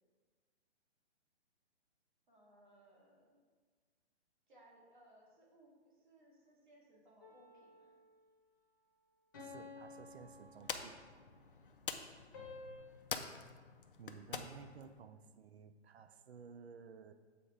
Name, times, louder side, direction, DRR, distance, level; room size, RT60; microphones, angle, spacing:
voice 1, 2.3-3.4 4.5-7.9 15.0-15.5, right 1 dB, 45° right, -3 dB, 2.0 m, -65 dB
sound 1, 7.2-8.2 9.3-11.2 12.3-12.8, left 3 dB, 15° left, 1.0 m, -53 dB
voice 2, 9.4-11.1 14.0-17.1, right 6 dB, 65° right, 10 dB, 0.5 m, -55 dB
sound 2, 9.8-15.0, left 6 dB, 50° left, 0.5 m, -47 dB
7.3 x 4.2 x 4.8 m, 1.5 s
hypercardioid pair, 180°, 34 cm